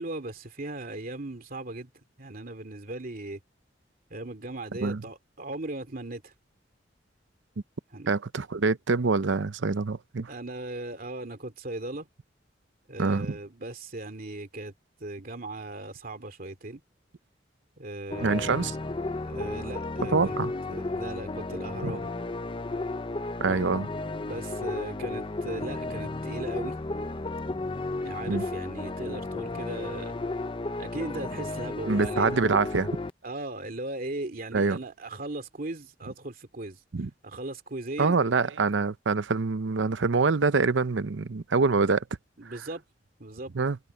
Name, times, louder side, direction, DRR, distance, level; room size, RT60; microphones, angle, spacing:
voice 1, 0.0-1.9 2.2-3.4 4.1-6.3 7.9-8.1 10.3-12.1 12.9-14.7 15.0-16.8 17.8-18.6 19.2-20.4 20.7-22.1 24.2-26.8 28.0-30.2 30.8-32.4 33.2-36.8 37.2-38.2 42.4-42.8 43.2-43.5, right 2 dB, 50° right, 2.6 m, -38 dB
voice 2, 8.1-10.3 13.0-13.4 18.2-18.7 20.1-20.5 21.8-22.0 23.4-23.9 28.3-28.4 31.9-32.9 34.5-34.8 36.9-37.1 38.0-42.0 42.5-42.6 43.5-43.8, right 4 dB, 90° right, 0.7 m, -25 dB
sound 1, 18.1-33.1, left 2 dB, 30° left, 0.7 m, -33 dB
head